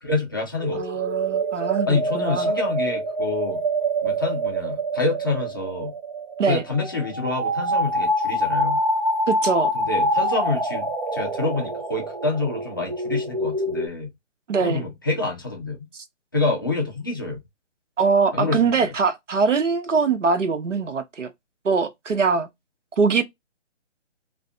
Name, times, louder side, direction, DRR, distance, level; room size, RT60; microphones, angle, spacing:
voice 1, 0.0-0.9 1.9-3.6 4.0-5.9 6.5-8.8 9.7-14.1 14.6-15.9 16.3-17.4 18.3-18.9, left 3 dB, 20° left, 0.4 m, -27 dB
sound 1, 0.6-13.9, right 1 dB, 45° right, 0.7 m, -26 dB
voice 2, 0.7-2.5 6.4-6.6 9.3-9.7 14.5-14.8 18.0-21.3 21.6-22.5 23.0-23.2, right 5 dB, 85° right, 0.8 m, -22 dB
2.4 x 2.4 x 2.4 m
figure-of-eight pair, 150°, 36 cm